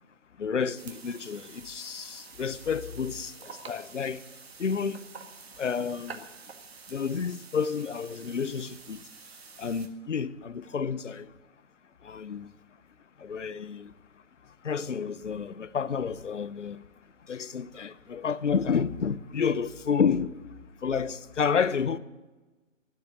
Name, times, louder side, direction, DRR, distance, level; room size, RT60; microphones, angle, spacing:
voice 1, 0.4-4.2 4.6-5.1 5.6-6.3 6.9-9.1 9.6-11.3 12.0-12.5 13.2-13.9 14.6-16.8 17.3-20.4 20.8-22.0, left 6 dB, 70° left, 0.8 m, -30 dB
sound 1, 0.8-9.9, right 5 dB, 55° right, 1.8 m, -48 dB
12.5 x 10.0 x 9.4 m
figure-of-eight pair, 140°, 38 cm